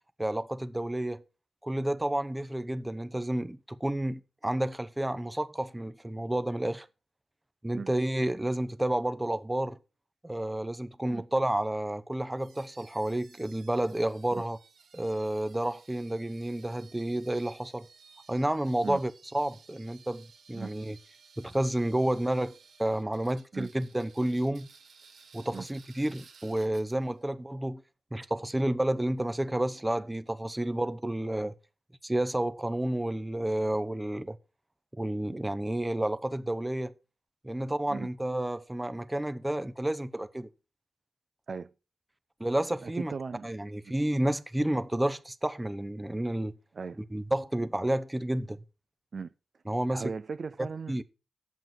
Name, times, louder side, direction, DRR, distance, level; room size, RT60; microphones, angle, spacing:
voice 1, 0.2-1.2 1.6-6.9 7.6-9.8 10.2-14.6 14.9-17.9 18.3-21.0 21.4-24.7 25.3-27.8 28.1-31.6 32.0-34.4 35.0-36.9 37.4-40.5 42.4-43.1 43.4-46.5 47.1-48.6 49.7-50.1 50.6-51.0, right 1 dB, 10° right, 0.8 m, -30 dB
sound 1, 12.4-27.2, right 5 dB, 90° right, 2.4 m, -58 dB
voice 2, 42.8-43.4 46.8-47.0 49.1-49.3 49.9-51.0, right 5 dB, 55° right, 0.5 m, -37 dB
9.3 x 7.8 x 5.9 m
wide cardioid pair, 100°, 0 cm